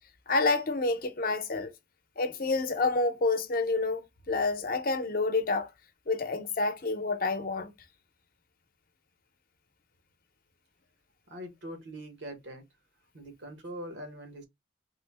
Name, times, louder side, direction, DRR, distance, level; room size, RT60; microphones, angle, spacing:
voice 1, 0.3-1.7 2.2-5.7 6.1-7.7, left 3 dB, 55° left, 0.7 m, -28 dB
voice 2, 11.3-12.6 13.1-14.5, equal, 85° right, 1.0 m, -42 dB
3.7 x 2.1 x 3.3 m
head